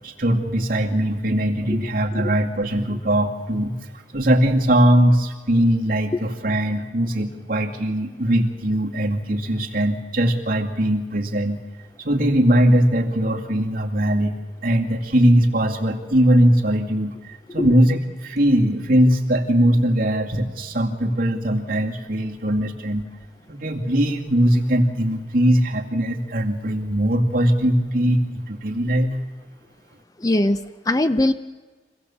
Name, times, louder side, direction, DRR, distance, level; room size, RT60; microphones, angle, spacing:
voice 1, 0.0-3.7 4.1-11.6 12.0-14.3 14.6-23.1 23.5-29.2, equal, 50° right, 0 dB, 2.3 m, -20 dB
voice 2, 30.2-31.3, left 1 dB, 20° left, 11 dB, 0.6 m, -21 dB
25.5 x 17.0 x 7.2 m, 1.3 s
head